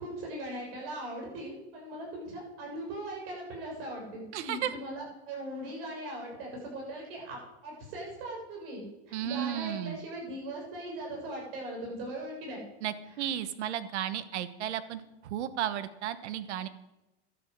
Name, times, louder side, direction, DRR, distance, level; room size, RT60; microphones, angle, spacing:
voice 1, 0.0-12.6, right 1 dB, 55° right, -1 dB, 7.2 m, -40 dB
voice 2, 4.3-4.7 9.1-10.0 12.8-16.7, right 11 dB, 75° right, 14 dB, 1.3 m, -34 dB
11.5 x 10.5 x 8.0 m, 0.98 s
supercardioid pair, 155°, 34 cm